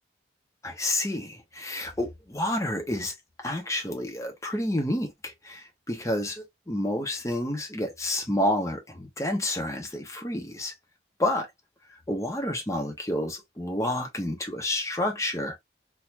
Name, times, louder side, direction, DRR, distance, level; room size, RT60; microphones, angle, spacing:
voice 1, 0.6-10.7 11.2-11.4 12.1-15.6, left 1 dB, 15° left, 1.1 m, -29 dB
4.0 x 2.9 x 2.5 m
head